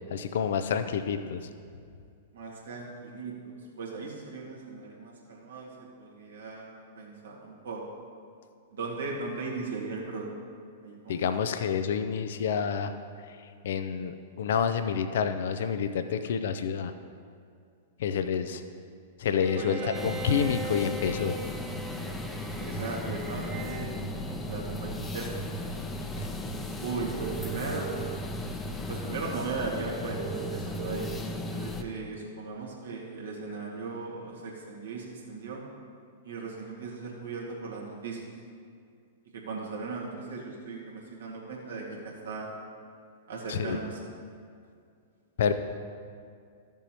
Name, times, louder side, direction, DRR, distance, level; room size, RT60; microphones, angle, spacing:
voice 1, 0.1-1.5 11.1-12.9 13.3-16.9 18.0-18.6 19.2-21.4 26.2-26.3 43.5-43.8 45.4-45.5, left 7 dB, 65° left, 9 dB, 0.4 m, -28 dB
voice 2, 2.3-5.7 6.0-7.8 8.7-10.2 10.8-11.4 19.5-20.1 22.6-24.1 24.4-25.5 26.8-27.9 28.9-31.1 31.5-35.6 36.2-38.2 39.3-42.5 43.3-44.0, right 4 dB, 70° right, -2 dB, 1.9 m, -37 dB
Bowed string instrument, 19.4-24.1, right 1 dB, 15° right, 0.8 m, -40 dB
sound 1, 19.9-31.8, left 1 dB, 15° left, 0.7 m, -36 dB
sound 2, 27.2-28.2 30.2-31.2, right 12 dB, 55° right, 0.6 m, -38 dB
13.5 x 7.0 x 2.9 m, 2.3 s
hypercardioid pair, 105°, 0 cm